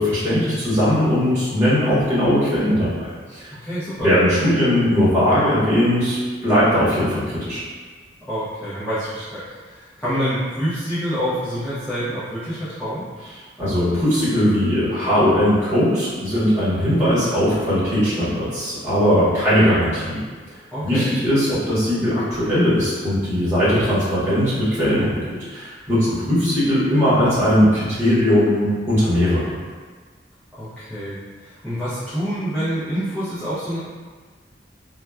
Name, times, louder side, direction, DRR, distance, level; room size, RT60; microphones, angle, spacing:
voice 1, 0.0-3.5 4.0-7.6 13.6-20.2 20.8-29.4, equal, 15° right, -12 dB, 1.1 m, -19 dB
voice 2, 3.6-4.1 8.3-13.0 20.7-21.1 26.1-26.3 30.6-33.8, equal, 5° left, -15 dB, 0.6 m, -27 dB
2.9 x 2.2 x 2.3 m, 1.5 s
head